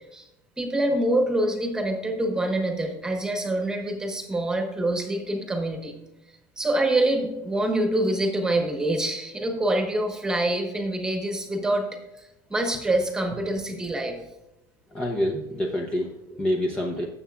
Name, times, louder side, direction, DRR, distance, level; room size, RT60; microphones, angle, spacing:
voice 1, 0.6-5.9 6.6-11.9 12.5-14.2, right 1 dB, 10° right, 3 dB, 1.2 m, -25 dB
voice 2, 14.9-17.1, left 1 dB, 10° left, 0 dB, 0.8 m, -27 dB
16.5 x 7.0 x 2.4 m, 0.98 s
cardioid pair, 175°, 8 cm